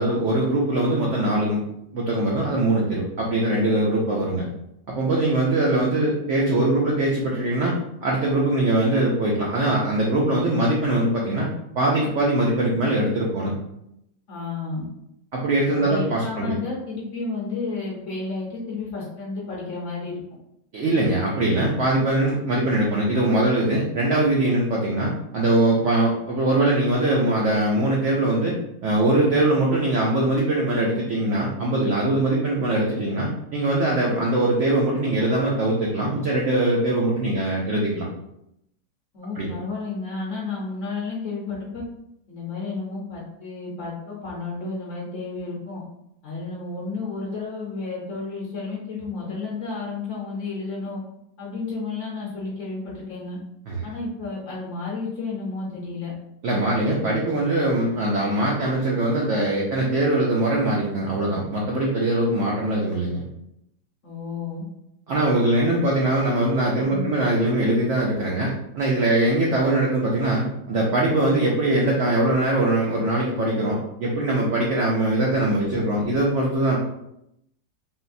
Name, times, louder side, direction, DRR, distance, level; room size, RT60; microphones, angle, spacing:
voice 1, 0.0-1.6 1.9-4.5 5.0-11.5 11.7-13.5 15.3-16.5 20.7-38.1 39.4-39.5 53.7-53.8 56.4-63.2 65.1-76.8, right 1 dB, 80° right, -3 dB, 0.6 m, -22 dB
voice 2, 14.3-14.9 15.8-20.2 39.1-41.8 42.3-45.8 46.2-51.0 51.4-53.4 53.8-56.1 64.0-64.6 66.9-67.2, left 3 dB, 60° left, -4 dB, 0.9 m, -32 dB
3.9 x 2.0 x 2.5 m, 0.81 s
omnidirectional pair, 1.9 m